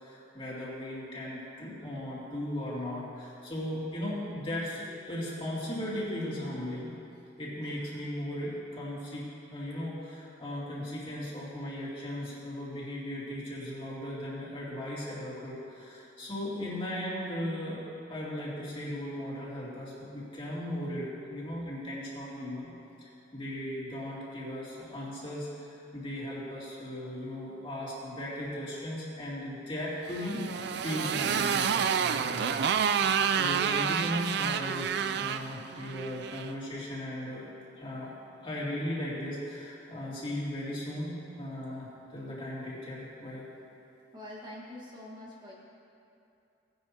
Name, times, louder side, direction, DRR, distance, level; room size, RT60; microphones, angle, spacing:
voice 1, 0.0-6.9 7.4-17.8 18.1-22.7 23.0-37.4 37.8-38.1 38.4-43.5, left 1 dB, 30° left, -7 dB, 2.7 m, -37 dB
Motorcycle, 30.1-36.5, right 7 dB, 60° right, 0.4 m, -29 dB
voice 2, 44.1-45.5, left 1 dB, 25° right, -5 dB, 1.6 m, -44 dB
17.5 x 10.5 x 2.9 m, 2.7 s
head